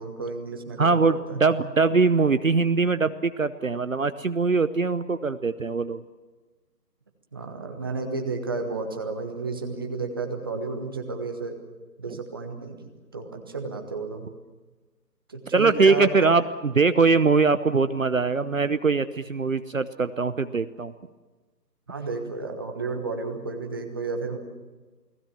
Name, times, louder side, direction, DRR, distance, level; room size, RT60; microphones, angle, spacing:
voice 1, 0.0-1.4 7.3-11.6 12.0-12.8 13.1-14.3 15.3-16.1 21.9-24.4, right 3 dB, 15° right, 4 dB, 1.2 m, -32 dB
voice 2, 0.8-6.0 15.5-16.4 16.7-20.9, right 4 dB, 50° right, 12 dB, 0.9 m, -22 dB
29.0 x 19.0 x 7.3 m, 1.3 s
figure-of-eight pair, 155°, 50 cm